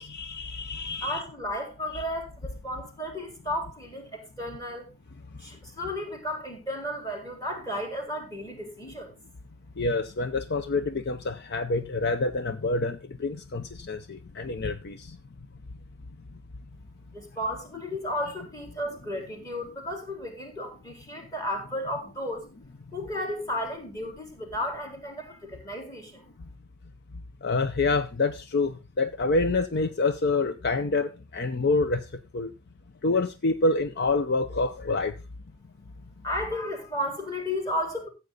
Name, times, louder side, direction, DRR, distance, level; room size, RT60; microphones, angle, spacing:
voice 1, 0.0-1.2 1.9-2.0 9.8-15.2 27.4-32.1 32.3-32.5 33.0-35.1, left 3 dB, 55° left, 0.7 m, -27 dB
voice 2, 1.0-4.9 5.4-9.1 17.1-22.5 22.9-26.2 36.2-38.1, left 1 dB, 20° left, 3.8 m, -33 dB
14.5 x 8.1 x 3.9 m
head